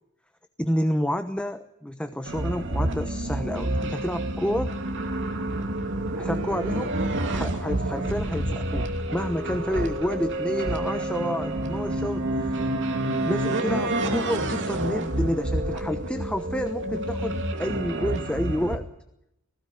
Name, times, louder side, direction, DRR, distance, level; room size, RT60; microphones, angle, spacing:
voice 1, 0.6-4.7 6.2-12.6 13.2-18.9, equal, 5° left, 8 dB, 1.0 m, -29 dB
sound 1, 2.2-18.8, right 1 dB, 55° right, 2.6 m, -28 dB
19.5 x 16.5 x 9.9 m, 0.82 s
head